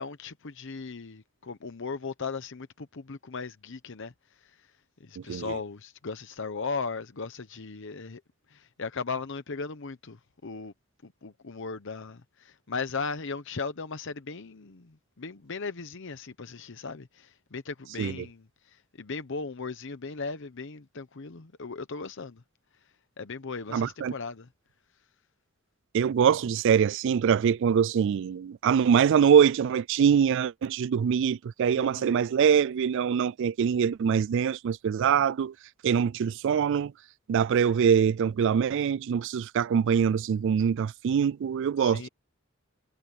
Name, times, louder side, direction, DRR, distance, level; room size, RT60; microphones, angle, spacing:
voice 1, 0.0-4.1 4.4-4.7 5.0-8.2 8.5-10.7 11.0-22.4 23.2-24.5 31.7-32.1 41.8-42.1, left 4 dB, 65° left, 0.9 m, -37 dB
voice 2, 5.2-5.5 18.0-18.2 23.7-24.1 25.9-35.5 35.8-36.9 37.3-42.1, right 7 dB, 60° right, 0.3 m, -24 dB
head